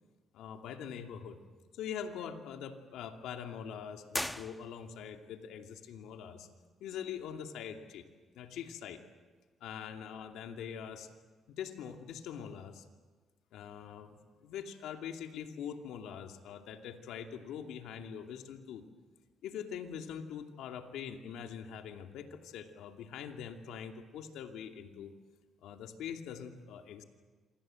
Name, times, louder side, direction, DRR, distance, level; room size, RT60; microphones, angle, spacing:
voice 1, 0.3-1.4 1.7-6.5 6.8-8.0 8.3-9.0 9.6-11.1 11.5-12.8 13.5-18.8 19.4-25.1 25.6-27.0, left 8 dB, 85° left, 5 dB, 2.6 m, -43 dB
sound 1, 4.1-5.2, left 1 dB, 5° left, 1.2 m, -39 dB
27.5 x 25.0 x 7.8 m, 1.4 s
cardioid pair, 90°, 0 cm